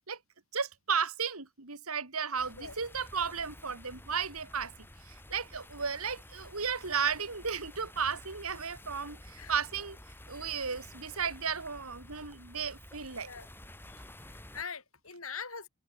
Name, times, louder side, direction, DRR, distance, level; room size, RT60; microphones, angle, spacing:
voice 1, 0.5-4.7 5.3-9.2 9.5-10.0 10.3-13.3, right 6 dB, 80° right, 2.9 m, -34 dB
sound 1, 2.4-14.6, left 1 dB, 10° left, 7.6 m, -51 dB
voice 2, 13.9-15.7, left 6 dB, 75° left, 6.6 m, -43 dB
head